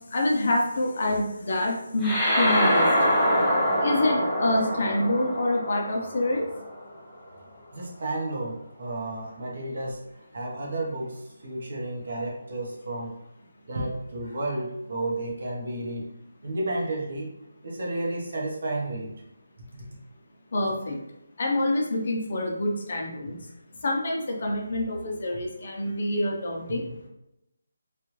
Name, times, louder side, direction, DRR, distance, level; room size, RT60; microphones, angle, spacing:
voice 1, 0.1-2.9 3.8-6.4 20.5-21.0 21.4-23.4 23.8-26.8, left 1 dB, 50° left, 0 dB, 0.8 m, -26 dB
sound 1, 2.0-6.8, equal, 5° left, 0.6 m, -24 dB
voice 2, 7.7-10.0 10.3-13.1 13.7-16.1 16.4-17.3 17.6-19.1, right 2 dB, 55° right, -1 dB, 1.1 m, -32 dB
3.2 x 2.6 x 3.1 m, 0.86 s
hypercardioid pair, 170°, 0 cm